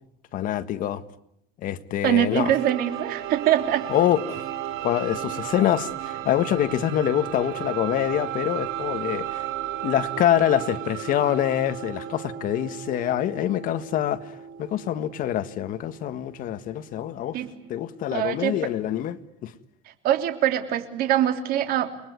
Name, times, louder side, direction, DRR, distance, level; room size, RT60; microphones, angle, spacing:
voice 1, 0.3-1.0 1.6-2.5 3.9-4.4 4.8-9.5 9.8-17.4 17.7-19.5, left 11 dB, 50° left, 1.6 m, -25 dB
voice 2, 2.0-3.9 17.3-17.5 18.1-18.5 20.0-21.9, right 11 dB, 55° right, 3.4 m, -23 dB
sound 1, 2.4-18.0, right 12 dB, 80° right, 7.4 m, -34 dB
30.0 x 21.0 x 9.5 m
cardioid pair, 155°, 18 cm